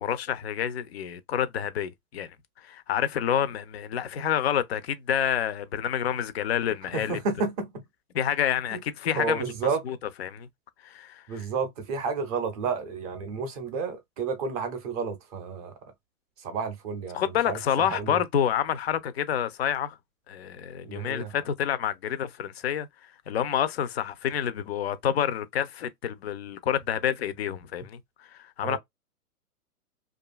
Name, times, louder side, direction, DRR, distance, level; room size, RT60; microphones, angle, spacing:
voice 1, 0.0-2.3 2.6-7.2 8.1-9.4 9.8-10.5 10.8-11.4 17.1-20.0 20.3-22.9 23.3-28.8, left 9 dB, 45° left, 0.4 m, -28 dB
voice 2, 6.9-7.8 8.7-8.8 9.2-9.8 11.3-15.7 16.4-18.2 20.8-21.3 28.6-28.8, right 5 dB, 25° right, 0.6 m, -31 dB
2.6 x 2.4 x 2.3 m
hypercardioid pair, 130°, 46 cm